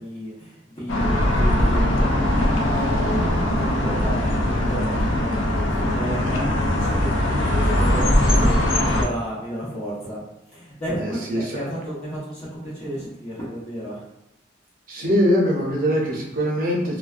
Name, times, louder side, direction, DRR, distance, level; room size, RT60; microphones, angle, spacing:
voice 1, 0.0-10.2 10.5-14.0, equal, 35° left, -8 dB, 1.0 m, -32 dB
sound 1, 0.9-9.0, left 1 dB, 75° left, 0.4 m, -20 dB
voice 2, 7.6-8.0 8.3-8.4 11.0-11.6 14.9-17.0, equal, 45° right, -3 dB, 0.6 m, -23 dB
2.3 x 2.2 x 2.4 m, 0.90 s
head